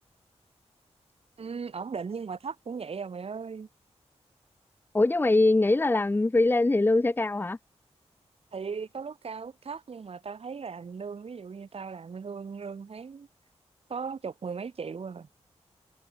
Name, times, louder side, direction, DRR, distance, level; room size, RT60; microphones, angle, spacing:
voice 1, 1.4-3.7 8.5-13.3 13.9-15.3, right 5 dB, 60° right, 5.7 m, -37 dB
voice 2, 4.9-7.6, left 2 dB, 20° left, 1.0 m, -22 dB
wide cardioid pair, 150°, 11 cm